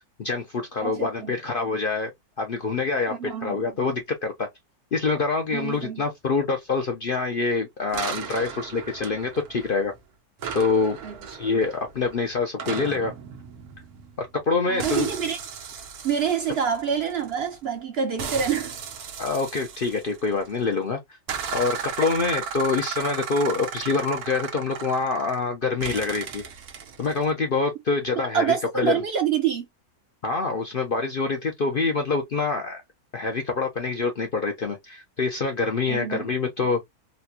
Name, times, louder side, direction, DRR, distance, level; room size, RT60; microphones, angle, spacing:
voice 1, 0.2-2.1 2.4-4.5 4.9-9.9 10.5-11.0 11.4-13.1 14.2-15.1 19.2-21.0 21.5-26.4 27.0-29.0 30.2-32.8 33.1-36.8, left 4 dB, 55° left, 0.6 m, -26 dB
voice 2, 0.8-1.3 3.1-3.6 5.5-6.0 11.0-11.2 14.7-15.4 16.0-18.8 22.0-22.1 28.3-29.7 35.9-36.3, right 8 dB, 55° right, 0.7 m, -26 dB
sound 1, 7.9-10.0 10.4-14.4 14.8-17.6 18.2-20.6 21.3-25.5 25.8-27.3, right 7 dB, 90° right, 1.4 m, -36 dB
4.1 x 2.2 x 2.7 m
omnidirectional pair, 1.6 m